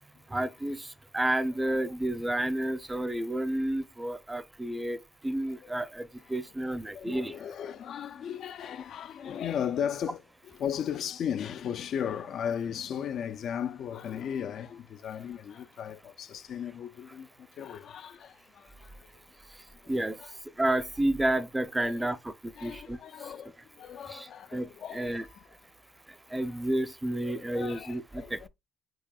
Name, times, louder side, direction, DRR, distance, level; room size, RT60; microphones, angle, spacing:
voice 1, 0.3-7.3 19.9-20.2 20.6-23.0 24.1-25.3 26.3-28.5, right 1 dB, 15° right, 0.5 m, -31 dB
voice 2, 6.9-17.3 17.6-18.7 20.2-20.3 21.8-22.1 22.6-25.5 27.2-28.5, left 8 dB, 70° left, 0.3 m, -36 dB
4.7 x 4.7 x 2.2 m
cardioid pair, 90°, 0 cm